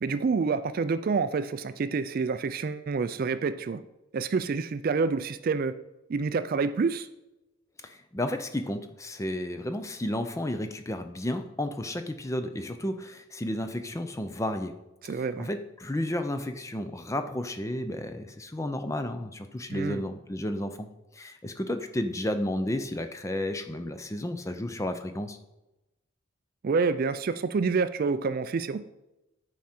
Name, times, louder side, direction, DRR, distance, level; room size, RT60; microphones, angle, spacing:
voice 1, 0.0-3.8 4.1-5.7 6.1-7.1 15.0-15.5 19.7-20.0 26.6-28.8, right 4 dB, 45° right, 12 dB, 0.3 m, -28 dB
voice 2, 7.8-14.7 15.1-20.9 21.1-25.4, left 1 dB, 15° left, 8 dB, 0.5 m, -32 dB
9.3 x 4.9 x 4.3 m, 0.94 s
head